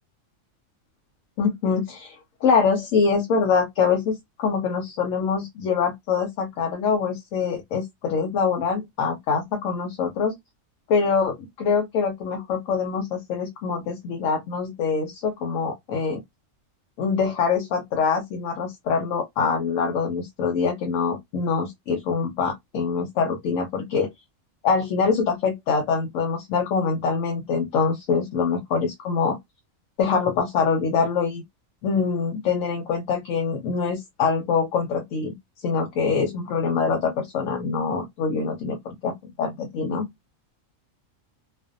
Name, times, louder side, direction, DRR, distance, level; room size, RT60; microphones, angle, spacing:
voice 1, 1.4-10.4 10.9-16.2 17.0-24.1 24.6-29.4 30.0-31.4 31.8-40.1, left 5 dB, 80° left, 1.0 m, -24 dB
2.5 x 2.1 x 2.4 m
omnidirectional pair, 1.3 m